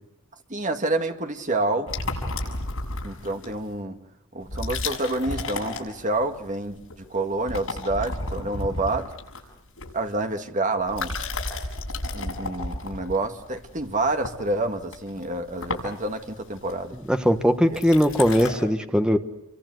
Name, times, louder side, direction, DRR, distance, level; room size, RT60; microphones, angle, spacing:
voice 1, 0.5-1.9 3.0-4.0 4.3-6.8 7.1-9.1 9.9-11.2 12.1-16.9 17.7-17.8, right 2 dB, 35° right, 6 dB, 2.0 m, -28 dB
sound 1, 1.9-3.7 4.4-6.4 6.7-7.1 7.3-10.3 10.8-18.5, left 2 dB, 70° left, 6.7 m, -33 dB
voice 2, 17.1-19.2, equal, 5° right, 7 dB, 1.2 m, -20 dB
29.0 x 24.0 x 7.9 m, 0.78 s
head